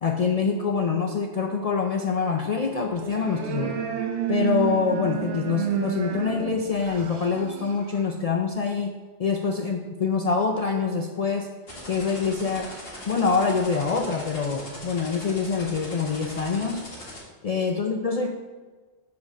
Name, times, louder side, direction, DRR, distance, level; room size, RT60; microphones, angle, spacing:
voice 1, 0.0-3.8 4.3-8.9 9.2-11.5 11.9-12.7 13.1-16.9 17.4-18.3, left 5 dB, 75° left, 3 dB, 0.3 m, -25 dB
sound 1, 2.9-8.1, right 9 dB, 70° right, 1.0 m, -30 dB
sound 2, 11.7-17.2, left 1 dB, 55° left, 1.8 m, -40 dB
5.2 x 5.1 x 6.2 m, 1.3 s
omnidirectional pair, 1.2 m